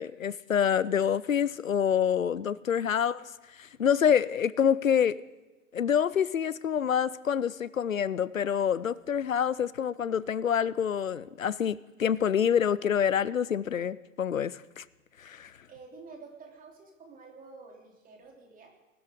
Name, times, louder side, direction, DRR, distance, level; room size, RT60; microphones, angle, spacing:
voice 1, 0.0-3.3 3.6-5.2 5.7-14.8 15.2-15.5, left 8 dB, 85° left, 20 dB, 0.5 m, -27 dB
voice 2, 2.6-3.0 15.7-18.7, right 4 dB, 20° right, 1 dB, 3.3 m, -50 dB
21.0 x 12.5 x 3.8 m, 1.2 s
figure-of-eight pair, 95°, 39 cm